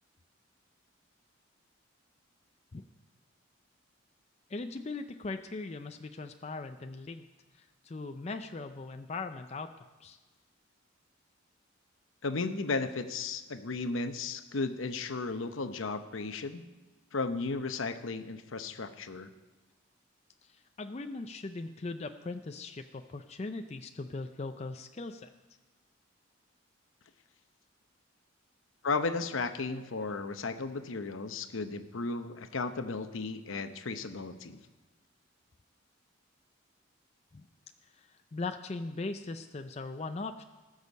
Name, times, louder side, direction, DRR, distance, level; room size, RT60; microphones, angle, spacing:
voice 1, 4.5-7.3 7.5-9.7 10.0-10.2 20.5-25.3 37.3-37.5 38.0-40.4, left 3 dB, 30° left, 7 dB, 0.4 m, -39 dB
voice 2, 12.2-16.6 17.1-19.3 28.8-34.6, left 3 dB, 75° left, 9 dB, 0.8 m, -34 dB
19.0 x 6.5 x 5.3 m, 1.2 s
head